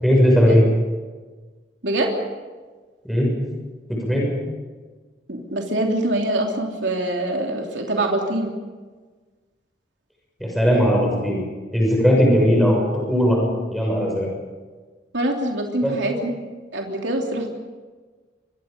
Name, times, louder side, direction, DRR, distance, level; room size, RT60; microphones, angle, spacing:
voice 1, 0.0-0.6 3.0-3.3 3.9-4.3 10.4-11.4 11.7-13.4 13.7-14.3 15.8-16.0, equal, ahead, -2 dB, 6.6 m, -18 dB
voice 2, 5.3-8.5 15.1-16.3 16.7-17.5, right 1 dB, 85° right, 1 dB, 3.1 m, -24 dB
26.0 x 24.0 x 5.3 m, 1.4 s
head